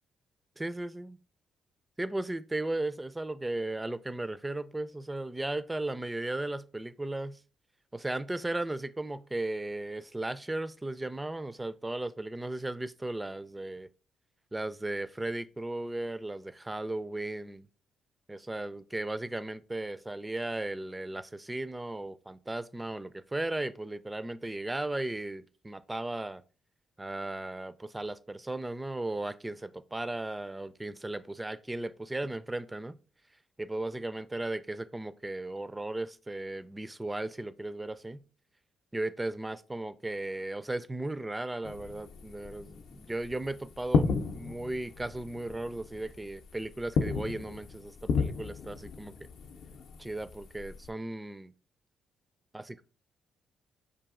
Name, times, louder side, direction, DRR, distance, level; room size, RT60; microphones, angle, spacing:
voice 1, 0.6-1.2 2.0-7.4 7.9-13.9 14.5-17.6 18.3-26.4 27.0-33.0 33.6-38.2 38.9-49.1 50.0-51.5 52.5-52.8, right 2 dB, 15° right, 0.3 m, -36 dB
sound 1, 41.6-50.9, left 5 dB, 70° left, 0.5 m, -34 dB
5.1 x 2.6 x 3.6 m
cardioid pair, 90°, 0 cm